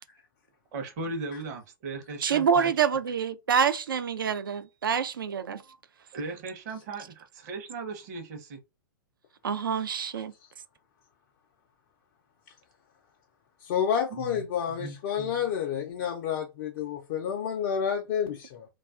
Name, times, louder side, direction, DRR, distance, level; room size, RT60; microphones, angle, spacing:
voice 1, 0.7-2.7 6.1-8.6 14.1-14.4 14.7-15.3, right 3 dB, 50° right, 0.8 m, -37 dB
voice 2, 2.2-5.6 9.4-10.3, right 7 dB, 75° right, 0.4 m, -26 dB
voice 3, 13.6-18.7, left 8 dB, 50° left, 0.4 m, -29 dB
2.3 x 2.2 x 2.4 m
figure-of-eight pair, 105°, 11 cm